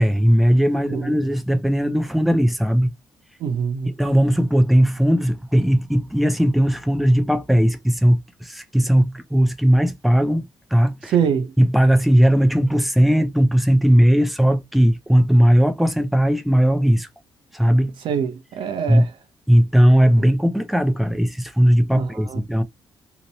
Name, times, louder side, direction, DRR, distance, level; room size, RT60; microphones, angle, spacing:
voice 1, 0.0-2.9 4.0-11.1 11.6-17.1 17.5-17.9 18.9-19.1 19.5-22.6, equal, ahead, 0.4 m, -18 dB
voice 2, 3.4-3.9 11.1-11.5 18.0-19.1 21.9-22.4, right 7 dB, 65° right, 0.6 m, -24 dB
2.9 x 2.0 x 2.5 m
cardioid pair, 160°, 9 cm